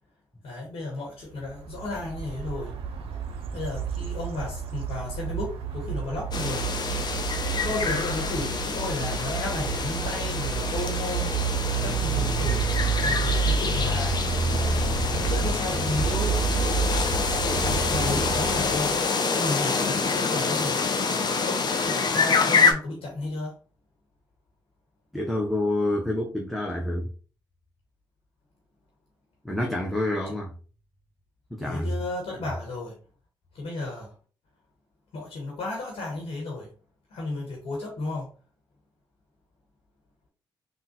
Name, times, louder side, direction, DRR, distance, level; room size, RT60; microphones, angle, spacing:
voice 1, 0.4-2.7 3.5-6.6 7.4-11.4 11.8-12.6 13.0-14.2 14.5-16.4 17.9-19.0 19.4-20.9 21.4-23.5 31.6-32.9 33.6-34.1 35.1-36.7 37.1-38.3, left 2 dB, 65° left, 1.2 m, -33 dB
sound 1, 1.4-19.0, right 5 dB, 65° right, 0.6 m, -29 dB
sound 2, 6.3-22.7, left 4 dB, 45° left, 0.6 m, -27 dB
voice 2, 25.1-27.1 29.4-30.5 31.5-31.9, left 1 dB, ahead, 0.7 m, -27 dB
3.6 x 2.3 x 2.8 m
hypercardioid pair, 45°, 10 cm